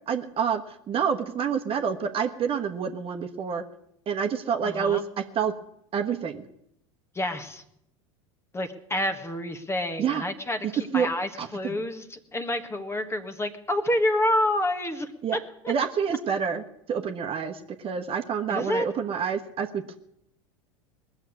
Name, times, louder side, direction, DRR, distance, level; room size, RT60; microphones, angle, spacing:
voice 1, 0.1-3.6 4.1-5.0 5.3-5.5 5.9-6.4 10.0-10.3 10.9-11.1 11.4-11.8 15.2-15.4 15.7-20.0, right 7 dB, 35° right, 5 dB, 1.3 m, -28 dB
voice 2, 4.6-5.0 7.1-7.6 8.5-15.4 15.6-15.7 18.5-18.8, left 1 dB, 15° left, 8 dB, 1.5 m, -28 dB
20.0 x 7.2 x 9.6 m, 0.77 s
hypercardioid pair, 85°, 17 cm